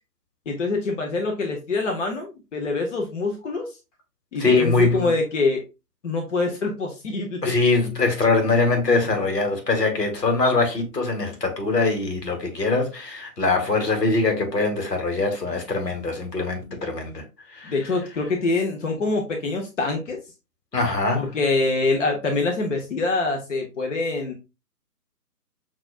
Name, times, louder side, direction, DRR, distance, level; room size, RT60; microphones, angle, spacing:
voice 1, 0.5-3.7 4.3-5.6 6.0-7.4 17.6-20.2 21.1-24.3, left 3 dB, 50° left, 1.0 m, -25 dB
voice 2, 4.4-5.1 7.4-17.2 17.5-17.7 20.7-21.2, left 3 dB, 80° left, 1.6 m, -22 dB
5.9 x 2.4 x 2.4 m
figure-of-eight pair, 135°, 48 cm